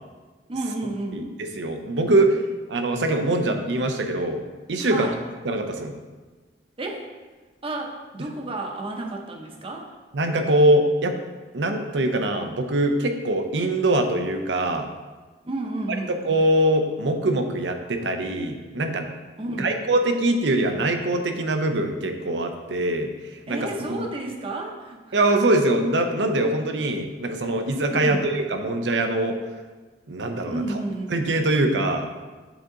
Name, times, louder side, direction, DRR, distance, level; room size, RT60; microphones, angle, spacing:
voice 1, 0.5-1.2 4.8-5.2 6.8-7.1 7.6-9.9 15.4-16.1 19.4-19.8 23.5-25.2 27.9-28.3 30.5-31.1, right 2 dB, 30° right, 2 dB, 0.8 m, -31 dB
voice 2, 1.1-2.4 2.7-4.4 4.7-5.1 5.4-5.9 10.1-11.2 11.5-14.9 16.1-19.1 19.6-23.1 23.5-24.0 25.1-29.4 30.1-30.6 31.1-32.1, right 1 dB, 85° right, 5 dB, 0.7 m, -23 dB
8.0 x 3.7 x 3.8 m, 1.3 s
head